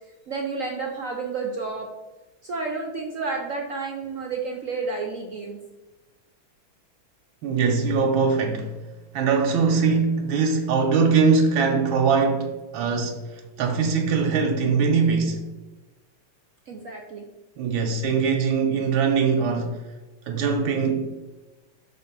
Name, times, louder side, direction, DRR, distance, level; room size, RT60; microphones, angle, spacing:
voice 1, 0.3-1.9 2.4-5.6 16.7-17.2, right 4 dB, 65° right, 0.8 m, -30 dB
voice 2, 7.4-8.7 9.1-15.5 17.6-19.8 20.3-21.2, right 5 dB, 85° right, 1.6 m, -22 dB
6.0 x 3.7 x 5.8 m
omnidirectional pair, 2.1 m